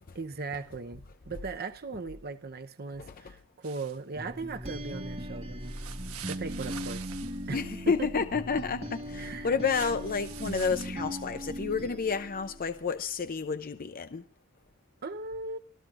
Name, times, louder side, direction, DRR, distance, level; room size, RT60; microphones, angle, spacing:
voice 1, 0.1-5.7 6.3-7.1 7.5-7.6 7.9-8.2 9.1-9.5 15.0-15.6, right 3 dB, 45° right, 0.8 m, -38 dB
voice 2, 3.0-3.3 7.5-14.2, left 5 dB, 40° left, 0.6 m, -30 dB
sound 1, 3.6-4.0 5.6-7.5 9.7-10.9, right 10 dB, 80° right, 1.2 m, -45 dB
sound 2, 4.2-12.9, equal, 30° right, 1.6 m, -39 dB
26.0 x 14.0 x 2.5 m
head